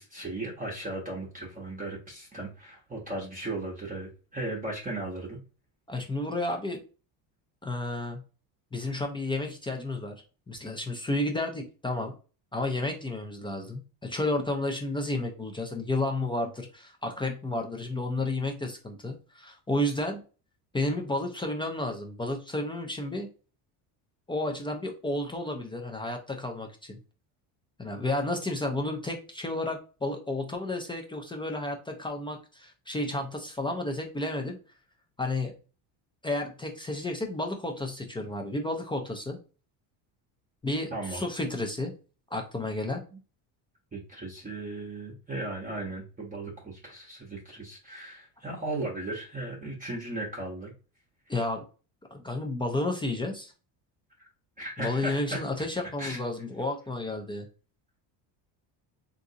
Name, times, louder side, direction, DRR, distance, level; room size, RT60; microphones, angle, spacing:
voice 1, 0.0-5.4 40.9-41.3 43.9-50.7 54.6-55.4 56.0-56.2, right 2 dB, 20° right, -3 dB, 0.7 m, -36 dB
voice 2, 5.9-6.8 7.6-8.2 8.7-10.1 10.5-12.1 12.5-20.2 20.7-23.3 24.3-27.0 27.8-34.6 35.2-35.5 36.2-39.4 40.6-41.9 42.3-43.0 51.3-51.6 52.1-53.5 54.8-57.5, left 2 dB, 15° left, 2 dB, 0.3 m, -31 dB
3.6 x 2.5 x 2.7 m, 0.35 s
cardioid pair, 130°, 42 cm